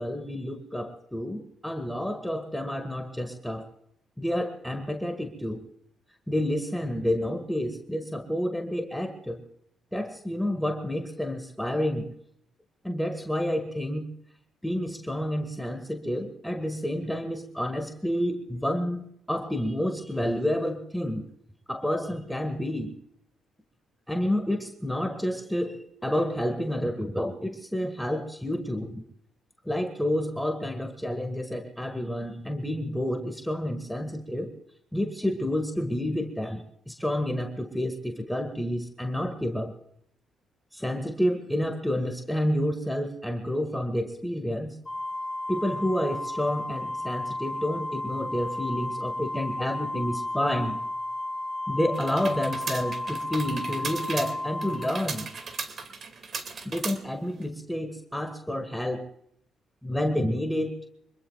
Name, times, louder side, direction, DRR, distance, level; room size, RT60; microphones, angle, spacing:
voice 1, 0.0-3.7 4.2-5.6 6.3-9.4 9.9-12.1 12.8-14.1 14.6-21.3 21.7-22.9 24.1-29.0 29.7-34.5 34.9-39.7 40.7-44.8 45.5-50.8 51.7-55.3 56.7-59.1 59.8-60.8, left 1 dB, 5° left, 6 dB, 1.7 m, -29 dB
Organ, 44.9-55.6, left 1 dB, 20° left, 0.9 m, -33 dB
sound 1, 51.9-57.4, right 5 dB, 50° right, 2.2 m, -37 dB
25.5 x 21.0 x 2.4 m, 0.71 s
cardioid pair, 90°, 0 cm